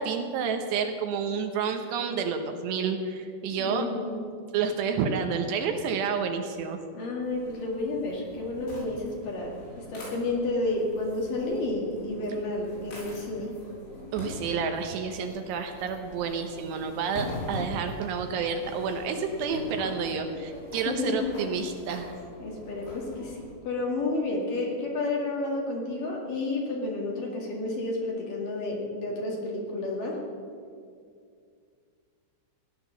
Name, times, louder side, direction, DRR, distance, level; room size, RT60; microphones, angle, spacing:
voice 1, 0.0-3.9 4.5-6.8 14.1-22.1, right 6 dB, 75° right, 5 dB, 2.7 m, -30 dB
voice 2, 3.6-4.2 6.9-9.5 9.9-13.5 20.8-21.3 22.4-30.2, left 2 dB, 50° left, -2 dB, 3.1 m, -31 dB
sound 1, 7.2-23.5, left 1 dB, 80° left, 7.8 m, -42 dB
16.5 x 10.5 x 6.9 m, 2.2 s
omnidirectional pair, 5.6 m